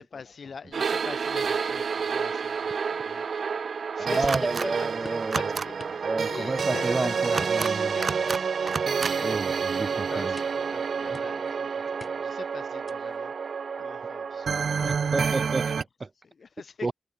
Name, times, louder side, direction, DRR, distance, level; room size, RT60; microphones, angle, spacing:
voice 1, 0.0-9.4 9.9-13.3 13.8-15.1 16.2-16.9, left 5 dB, 75° left, 2.9 m, -43 dB
sound 1, 0.7-15.8, right 6 dB, 80° right, 1.4 m, -29 dB
voice 2, 4.0-8.0 9.2-10.4 11.1-11.2 14.8-16.1 16.8-16.9, right 3 dB, 45° right, 1.7 m, -31 dB
sound 2, 4.3-4.7 5.2-5.7 7.2-7.7 8.0-8.4 8.7-9.1, right 4 dB, 65° right, 0.6 m, -30 dB
sound 3, 5.0-5.3 5.8-6.0 6.6-7.0 7.4-7.8 8.3-9.1 9.4-9.7 10.4-10.7 11.1-11.5 12.0-12.4 12.9-13.2, left 3 dB, 45° left, 4.0 m, -47 dB
wide cardioid pair, 70°, 0 cm